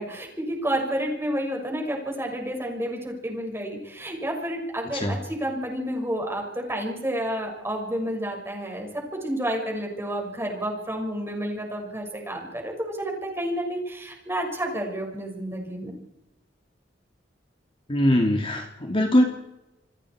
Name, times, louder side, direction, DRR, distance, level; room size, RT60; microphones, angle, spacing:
voice 1, 0.0-16.0, right 1 dB, 15° right, 1 dB, 6.5 m, -30 dB
voice 2, 17.9-19.2, left 1 dB, 30° left, 3 dB, 2.4 m, -21 dB
29.0 x 21.0 x 4.9 m, 0.94 s
head